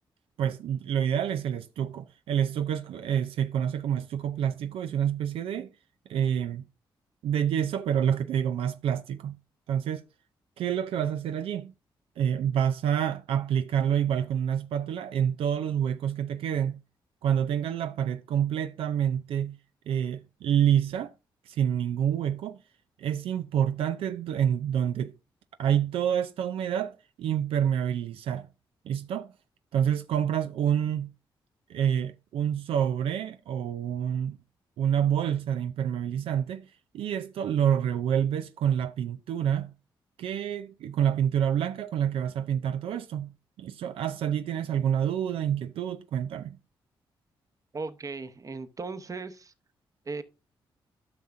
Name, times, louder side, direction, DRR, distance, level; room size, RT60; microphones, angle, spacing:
voice 1, 0.4-5.7 6.1-6.7 7.2-9.4 9.7-10.0 10.6-11.7 12.2-16.8 17.2-19.6 19.9-21.1 21.5-22.6 23.0-25.1 25.6-28.5 28.8-29.3 29.7-31.1 31.7-34.4 34.8-39.7 40.2-43.3 43.6-46.6, right 9 dB, 85° right, 0.5 m, -28 dB
voice 2, 47.7-49.5 50.1-50.2, right 4 dB, 35° right, 0.9 m, -37 dB
13.0 x 5.8 x 2.6 m
cardioid pair, 70°, 9 cm